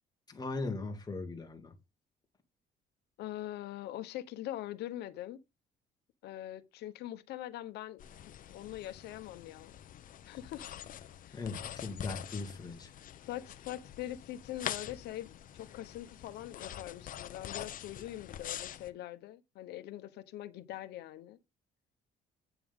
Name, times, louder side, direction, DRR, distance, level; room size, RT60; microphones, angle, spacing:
voice 1, 0.3-1.7 11.3-12.9, left 3 dB, 25° left, 2.6 m, -39 dB
voice 2, 3.2-5.4 6.2-8.0 8.5-9.7 10.3-10.7 11.2-11.4 13.2-21.4, left 13 dB, 80° left, 1.2 m, -43 dB
sound 1, 8.0-18.9, left 10 dB, 55° left, 0.9 m, -45 dB
9.2 x 6.9 x 3.7 m
cardioid pair, 110°, 17 cm